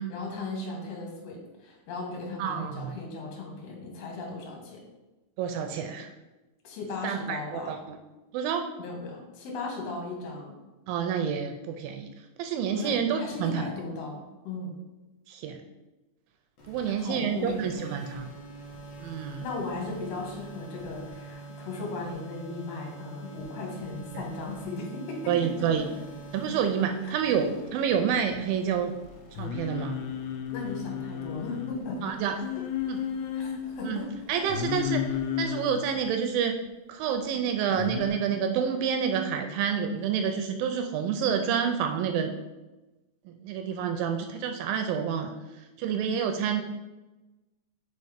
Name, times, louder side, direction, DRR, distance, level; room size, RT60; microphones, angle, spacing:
voice 1, 0.0-4.8 6.6-7.7 8.8-10.5 12.8-14.8 16.8-17.7 19.4-25.9 27.0-27.1 30.5-32.2 33.4-34.4, left 3 dB, 55° left, -1 dB, 2.1 m, -37 dB
voice 2, 2.4-2.9 5.4-6.1 7.0-8.0 8.3-8.7 10.9-12.1 12.4-13.7 15.3-15.6 16.7-18.3 19.0-19.4 24.2-24.3 25.3-25.8 26.3-28.9 29.4-30.0 32.0-32.4 32.9-33.0 33.9-34.0 34.3-35.0 35.4-36.5 36.9-42.3 43.3-45.3 45.8-46.6, right 7 dB, 80° right, 5 dB, 2.2 m, -28 dB
sound 1, 16.6-36.1, right 2 dB, 75° left, 1.0 m, -46 dB
Singing, 29.4-31.8 32.4-33.6 34.5-35.8 37.8-38.1, left 8 dB, 90° left, 2.5 m, -32 dB
5.2 x 4.5 x 4.9 m, 1.1 s
omnidirectional pair, 4.3 m